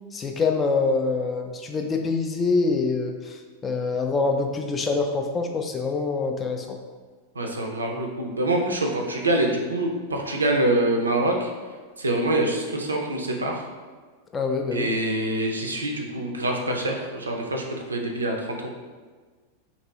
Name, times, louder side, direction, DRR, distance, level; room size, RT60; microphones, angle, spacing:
voice 1, 0.1-3.4 3.6-6.8 14.3-14.9, left 4 dB, 20° left, 4 dB, 0.3 m, -25 dB
voice 2, 7.4-11.5 12.0-13.7 14.7-17.6 17.9-18.7, right 1 dB, 75° right, 2 dB, 0.4 m, -25 dB
2.9 x 2.6 x 2.9 m, 1.4 s
figure-of-eight pair, 90°, 0 cm